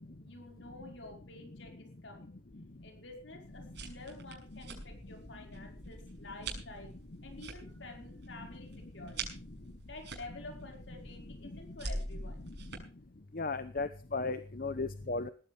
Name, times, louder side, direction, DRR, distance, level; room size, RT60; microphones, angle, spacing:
voice 1, 0.2-2.3 2.8-6.9 7.2-9.2 9.8-12.4, left 2 dB, 70° left, 3 dB, 5.1 m, -50 dB
sound 1, 3.4-12.8, right 2 dB, 60° right, 6.5 m, -45 dB
voice 2, 13.4-15.3, left 3 dB, 45° left, 11 dB, 0.9 m, -35 dB
19.5 x 15.0 x 3.4 m, 0.38 s
head